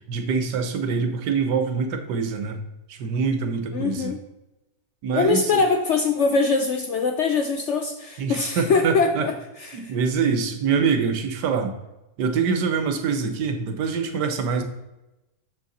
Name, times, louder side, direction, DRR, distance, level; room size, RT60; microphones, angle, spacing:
voice 1, 0.1-2.6 2.9-4.1 5.0-5.5 8.2-9.3 9.7-11.7 12.2-14.6, right 5 dB, 90° right, 7 dB, 1.5 m, -24 dB
voice 2, 3.7-4.2 5.1-9.9 13.2-13.3, left 4 dB, 65° left, 5 dB, 0.7 m, -23 dB
6.7 x 6.4 x 4.1 m, 0.99 s
omnidirectional pair, 1.8 m